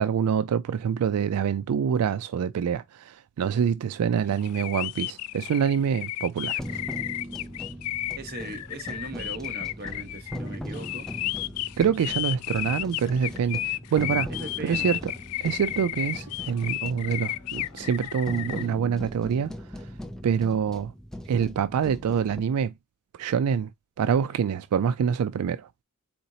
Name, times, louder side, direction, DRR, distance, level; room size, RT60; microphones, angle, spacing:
voice 1, 0.0-6.8 11.8-14.3 14.6-15.0 15.4-19.9 20.2-20.9 21.3-22.7 23.1-23.7 24.0-25.7, right 7 dB, 80° right, 0.3 m, -26 dB
sound 1, 4.4-18.7, left 16 dB, 80° left, 0.3 m, -33 dB
sound 2, 6.6-22.4, equal, ahead, 0.5 m, -39 dB
voice 2, 8.2-11.1 14.3-15.0, right 2 dB, 45° right, 1.0 m, -39 dB
4.3 x 3.8 x 2.7 m
head